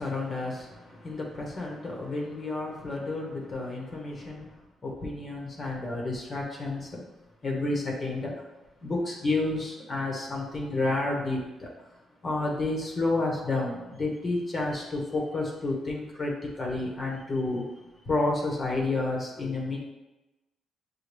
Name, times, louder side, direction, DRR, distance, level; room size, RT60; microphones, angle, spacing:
voice 1, 0.0-4.5 4.8-7.0 7.4-8.3 8.8-11.7 12.2-17.7 18.1-19.8, left 2 dB, 40° left, -1 dB, 1.0 m, -30 dB
6.6 x 2.3 x 3.3 m, 1.0 s
cardioid pair, 90°, 0 cm